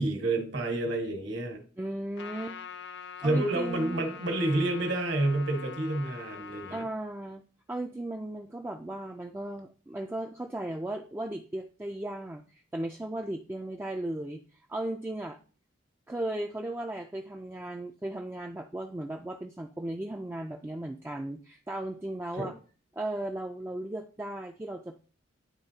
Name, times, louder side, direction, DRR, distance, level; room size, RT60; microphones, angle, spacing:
voice 1, 0.0-1.6 3.2-6.8 22.4-22.5, right 2 dB, 65° right, 4 dB, 1.5 m, -29 dB
voice 2, 1.8-2.6 3.2-4.1 6.7-7.4 7.7-14.4 14.7-15.4 16.1-22.5 22.9-25.0, right 1 dB, 10° right, 2 dB, 0.3 m, -36 dB
Trumpet, 2.2-6.9, left 7 dB, 60° left, 0.6 m, -44 dB
10.5 x 3.5 x 2.7 m, 0.39 s
head